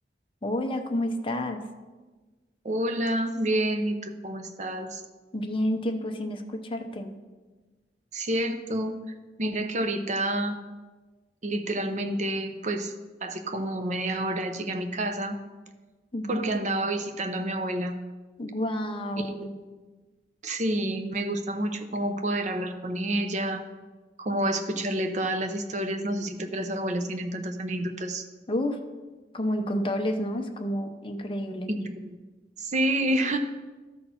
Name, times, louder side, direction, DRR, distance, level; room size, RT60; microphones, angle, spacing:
voice 1, 0.4-1.6 5.3-7.1 16.1-16.5 18.4-19.5 28.5-28.8 29.3-31.7, left 1 dB, 30° left, 4 dB, 0.7 m, -29 dB
voice 2, 2.6-5.0 8.1-9.0 9.4-10.6 11.4-12.9 13.2-15.4 16.3-17.9 19.2-19.5 20.4-23.6 24.2-28.3 31.7-32.1 32.6-33.4, right 1 dB, 40° right, 7 dB, 0.7 m, -29 dB
12.5 x 4.2 x 5.7 m, 1.3 s
head